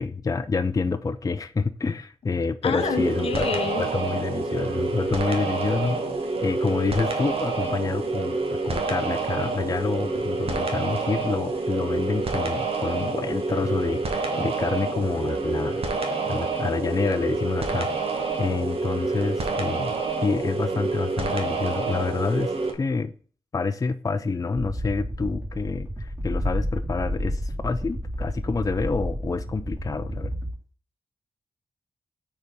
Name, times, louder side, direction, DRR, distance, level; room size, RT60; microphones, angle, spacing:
voice 1, 0.0-6.0 6.4-8.4 8.6-23.1 23.5-30.3, left 4 dB, 35° left, 0.5 m, -28 dB
voice 2, 2.6-3.8, left 6 dB, 70° left, 0.7 m, -28 dB
sound 1, 2.8-22.7, right 3 dB, 70° right, 1.3 m, -28 dB
sound 2, 24.5-30.5, equal, 20° right, 2.3 m, -30 dB
4.8 x 4.2 x 5.3 m
cardioid pair, 50°, 10 cm